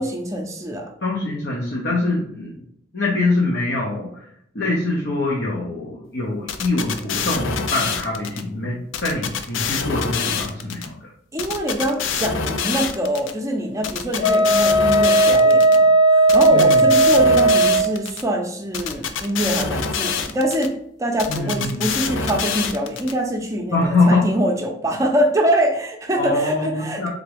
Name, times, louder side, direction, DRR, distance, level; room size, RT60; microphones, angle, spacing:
voice 1, 0.0-0.9 11.3-27.1, right 1 dB, 15° right, 2 dB, 0.6 m, -24 dB
voice 2, 1.0-2.6 2.9-4.3 4.5-11.0 16.5-16.9 21.3-21.8 23.7-24.2 26.2-27.1, left 2 dB, 60° left, -4 dB, 0.9 m, -23 dB
sound 1, 6.5-8.4 8.9-10.9 11.4-13.3 13.8-15.8 16.3-18.2 18.7-20.7 21.2-23.1, left 6 dB, 80° left, 0.5 m, -26 dB
Wind instrument woodwind instrument, 14.2-17.9, right 2 dB, 30° left, 0.6 m, -15 dB
3.7 x 3.5 x 3.4 m, 0.71 s
head